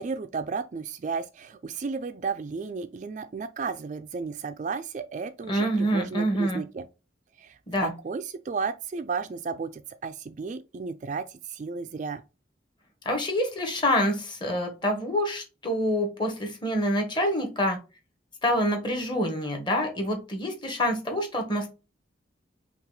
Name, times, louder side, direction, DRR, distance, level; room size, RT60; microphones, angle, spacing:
voice 1, 0.0-6.9 7.4-12.2, right 5 dB, 40° right, 0.3 m, -33 dB
voice 2, 5.5-6.6 7.7-7.9 13.0-17.8 18.4-21.7, equal, 25° left, 1.2 m, -26 dB
5.5 x 2.4 x 3.8 m
head